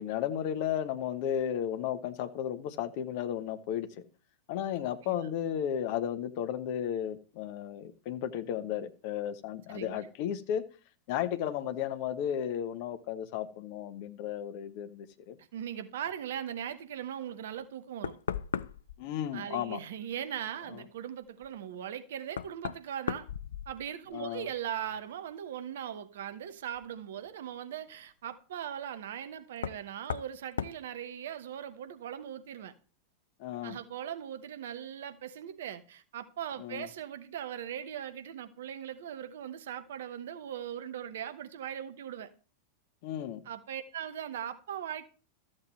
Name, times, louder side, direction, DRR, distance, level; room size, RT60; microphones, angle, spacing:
voice 1, 0.0-3.9 4.5-10.6 11.1-15.4 19.0-19.8 20.7-20.8 24.1-24.5 33.4-33.8 36.6-36.9 43.0-43.4, left 10 dB, 45° left, 0.9 m, -34 dB
voice 2, 15.5-18.2 19.3-23.3 23.7-32.7 33.6-42.3 43.4-45.1, right 9 dB, 60° right, 0.8 m, -39 dB
Knock, 17.6-17.7 18.0-19.0 21.4-21.5 22.3-24.1 24.5-25.0 26.7-26.8 29.6-29.8 30.1-30.3 30.6-30.8, left 7 dB, 65° left, 0.3 m, -36 dB
13.0 x 7.5 x 3.1 m
figure-of-eight pair, 90°, 0 cm